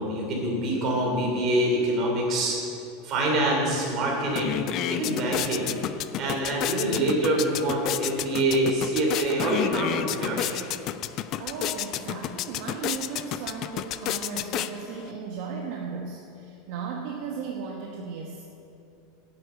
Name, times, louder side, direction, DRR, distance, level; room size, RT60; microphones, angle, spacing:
voice 1, 0.0-2.6 3.0-5.8 6.2-10.6, right 1 dB, 30° right, -2 dB, 3.1 m, -25 dB
sound 1, 3.8-3.9 4.2-15.1, left 12 dB, 35° left, 0.3 m, -31 dB
voice 2, 11.4-18.4, right 5 dB, 55° right, -1 dB, 1.1 m, -36 dB
9.6 x 8.1 x 8.1 m, 2.7 s
supercardioid pair, 170°, 0 cm